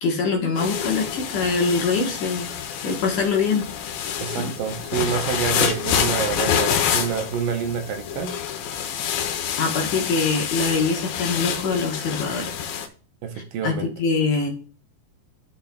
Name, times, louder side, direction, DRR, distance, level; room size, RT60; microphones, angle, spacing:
voice 1, 0.0-2.5 2.8-3.7 4.4-4.5 5.0-5.1 9.6-12.5 13.6-14.5, left 4 dB, 65° left, 0 dB, 2.6 m, -23 dB
sound 1, 0.6-12.9, left 8 dB, 80° left, 2.5 m, -27 dB
voice 2, 4.2-8.3 13.2-13.9, right 7 dB, 75° right, 5 dB, 2.3 m, -27 dB
12.5 x 6.6 x 2.3 m, 0.40 s
omnidirectional pair, 4.1 m